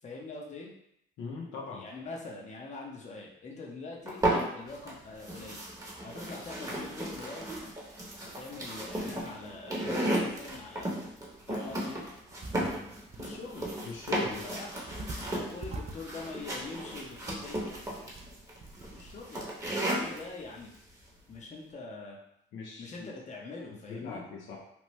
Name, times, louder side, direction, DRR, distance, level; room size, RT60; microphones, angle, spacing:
voice 1, 0.0-0.7 1.7-5.7 6.0-7.5 8.2-11.0 11.5-12.1 13.2-13.7 14.2-14.8 15.3-17.7 18.9-19.5 19.9-20.7 21.3-22.2 22.8-24.2, left 3 dB, 35° left, -2 dB, 0.7 m, -44 dB
voice 2, 1.2-1.9 13.8-14.5 22.5-23.1 23.9-24.6, left 4 dB, 80° left, -2 dB, 0.6 m, -40 dB
sound 1, 4.1-4.9 5.2-20.2, right 1 dB, 15° right, 0.9 m, -34 dB
sound 2, 12.3-19.2, right 2 dB, 35° right, 0.4 m, -46 dB
3.0 x 2.1 x 3.0 m, 0.76 s
cardioid pair, 90°, 20 cm